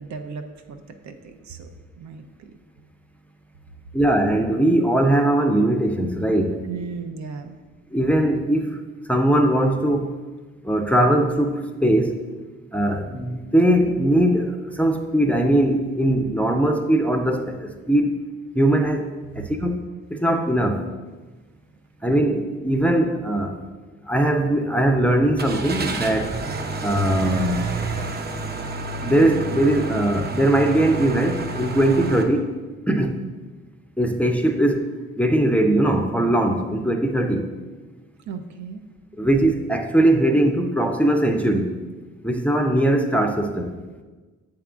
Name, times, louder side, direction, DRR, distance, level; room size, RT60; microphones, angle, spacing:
voice 1, 0.0-1.7 2.0-2.5 6.6-7.6 19.4-19.5 38.3-38.8, right 5 dB, 70° right, 7 dB, 0.6 m, -36 dB
voice 2, 3.9-6.6 7.9-8.8 9.1-10.1 10.6-12.2 12.7-18.1 18.5-19.1 19.4-19.8 20.1-20.8 22.0-23.6 24.1-26.4 26.8-27.9 29.0-32.5 32.9-33.2 34.0-37.5 39.2-41.8 42.2-43.7, right 1 dB, 5° left, 3 dB, 0.5 m, -20 dB
Car / Engine starting, 25.4-32.2, right 2 dB, 35° right, 0.7 m, -29 dB
7.6 x 3.7 x 3.6 m, 1.3 s
cardioid pair, 90°, 30 cm